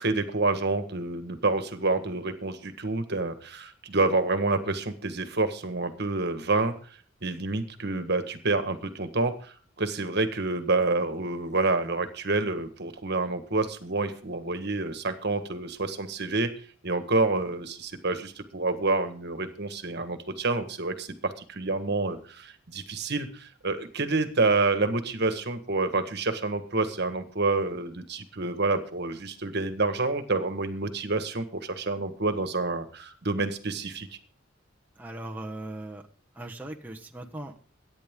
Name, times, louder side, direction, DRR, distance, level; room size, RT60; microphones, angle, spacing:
voice 1, 0.0-6.7 7.2-16.5 16.8-34.1, right 3 dB, 55° right, 9 dB, 1.6 m, -28 dB
voice 2, 35.0-36.0 36.3-37.6, right 1 dB, 10° right, 1 dB, 1.2 m, -39 dB
22.5 x 10.0 x 3.8 m, 0.42 s
head